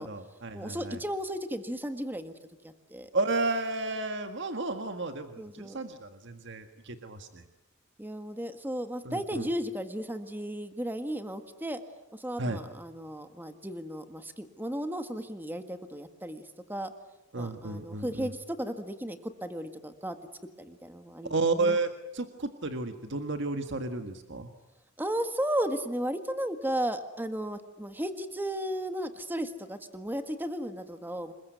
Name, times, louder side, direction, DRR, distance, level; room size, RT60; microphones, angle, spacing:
voice 1, 0.0-1.0 3.1-7.4 9.1-9.5 12.4-12.6 17.3-18.3 21.3-24.5, right 3 dB, 60° right, 7 dB, 1.7 m, -32 dB
voice 2, 0.5-2.3 2.6-3.1 5.4-5.8 8.0-11.8 12.1-16.9 17.3-20.2 20.6-21.8 25.0-31.3, equal, 10° right, 8 dB, 1.7 m, -35 dB
27.5 x 22.0 x 9.5 m, 0.98 s
head